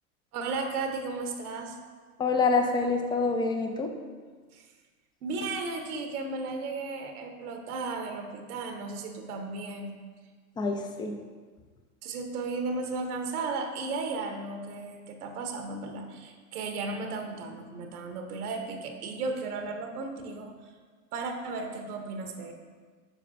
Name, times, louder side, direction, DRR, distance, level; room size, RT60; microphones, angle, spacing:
voice 1, 0.3-1.8 4.5-4.6 5.2-10.0 12.0-20.5 21.1-22.5, right 3 dB, 80° right, 4 dB, 1.0 m, -35 dB
voice 2, 2.2-3.9 10.6-11.2, left 4 dB, 10° left, 5 dB, 0.3 m, -26 dB
6.6 x 6.4 x 2.5 m, 1.5 s
hypercardioid pair, 100°, 44 cm